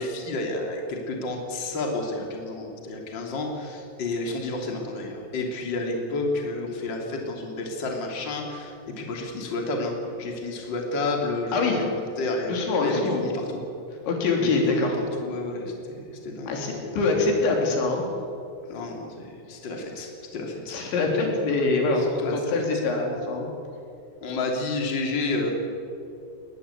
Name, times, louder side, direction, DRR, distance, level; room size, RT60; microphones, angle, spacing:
voice 1, 0.0-11.9 12.2-12.5 12.8-13.6 14.3-14.9 15.2-16.5 16.8-17.0 18.7-20.8 22.0-22.6 24.2-25.5, left 2 dB, 30° left, 1 dB, 3.2 m, -30 dB
voice 2, 12.5-13.2 14.1-14.9 16.5-18.1 20.7-23.5, left 3 dB, 85° left, 1 dB, 5.7 m, -24 dB
21.0 x 20.5 x 8.5 m, 2.6 s
omnidirectional pair, 5.1 m